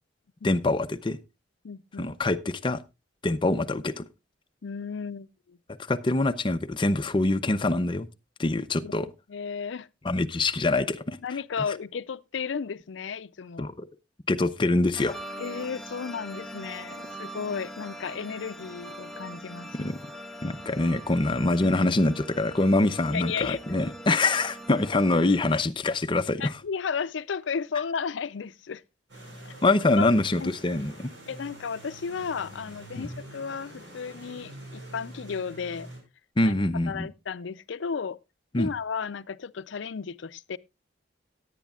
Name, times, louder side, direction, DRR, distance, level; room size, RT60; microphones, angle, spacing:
voice 1, 0.4-1.2 2.0-2.8 3.2-4.0 5.9-8.1 8.4-9.1 10.0-11.2 13.6-13.9 14.3-15.2 19.8-20.0 20.4-26.5 29.6-31.1 33.0-33.1 36.4-37.1 38.5-38.7, left 2 dB, 25° left, 0.6 m, -24 dB
voice 2, 1.6-2.1 4.6-5.6 8.8-8.9 9.3-9.9 11.2-13.7 15.4-19.9 23.1-23.6 26.4-28.8 30.0-30.1 30.4-30.5 31.3-35.9 36.4-36.5 36.9-38.2 38.6-40.6, left 6 dB, 75° left, 0.5 m, -34 dB
sound 1, 14.9-25.6, equal, ahead, 0.8 m, -42 dB
sound 2, 29.1-36.0, right 1 dB, 85° right, 5.4 m, -45 dB
17.5 x 9.1 x 2.4 m
head